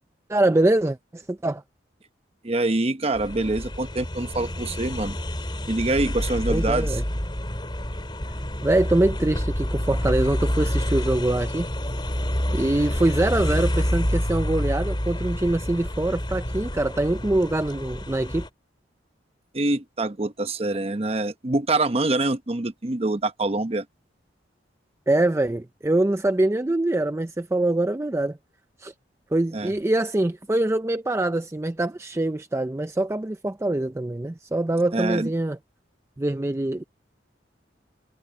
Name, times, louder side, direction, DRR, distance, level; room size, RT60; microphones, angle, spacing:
voice 1, 0.3-1.6 6.5-7.0 8.6-11.7 12.5-18.5 25.1-28.4 28.8-28.9 29.3-35.6 36.2-36.8, right 1 dB, 15° right, 0.4 m, -24 dB
voice 2, 2.4-5.2 5.7-7.0 19.5-23.9 29.5-29.7 34.9-35.3, right 2 dB, 35° right, 0.9 m, -25 dB
sound 1, 3.1-18.5, equal, 25° left, 2.8 m, -28 dB
head